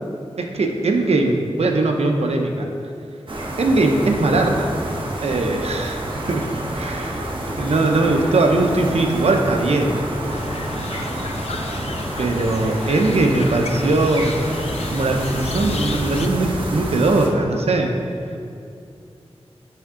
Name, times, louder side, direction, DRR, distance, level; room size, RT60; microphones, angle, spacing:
voice 1, 0.4-2.7 3.6-4.7 5.2-6.4 6.7-7.3 7.6-9.9 12.2-14.4 14.9-17.9, right 2 dB, 75° right, 3 dB, 0.7 m, -20 dB
sound 1, 3.3-17.3, right 1 dB, 50° right, 1.0 m, -28 dB
sound 2, 10.3-16.3, left 4 dB, 80° left, 0.4 m, -33 dB
10.0 x 3.6 x 3.7 m, 2.5 s
wide cardioid pair, 75°, 11 cm